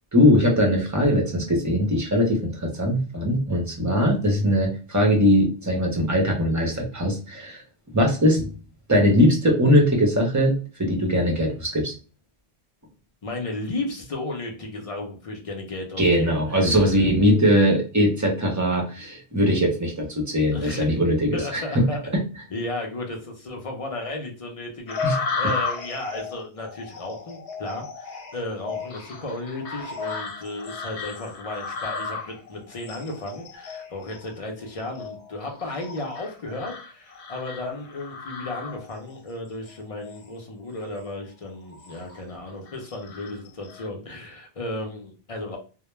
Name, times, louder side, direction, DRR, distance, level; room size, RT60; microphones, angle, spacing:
voice 1, 0.1-7.6 7.9-8.5 8.9-11.9 16.0-21.8 25.0-25.2, equal, 25° right, 1 dB, 0.5 m, -21 dB
voice 2, 13.2-16.9 20.5-22.2 22.5-45.6, left 2 dB, 50° left, 2 dB, 0.4 m, -34 dB
sound 1, 24.9-39.2 39.7-40.3 40.8-41.0 41.5-42.2 42.7-43.9, left 4 dB, 80° left, 0.9 m, -34 dB
2.2 x 2.1 x 3.0 m, 0.36 s
omnidirectional pair, 1.1 m